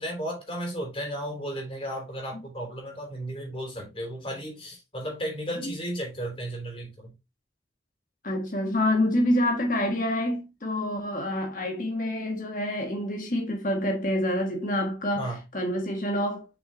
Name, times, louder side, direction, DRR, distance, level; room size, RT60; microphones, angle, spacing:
voice 1, 0.0-7.2 15.1-15.4, equal, 30° left, 3.5 m, -34 dB
voice 2, 8.2-15.3 15.5-16.5, left 1 dB, 45° left, 1.5 m, -27 dB
6.5 x 6.3 x 3.0 m
head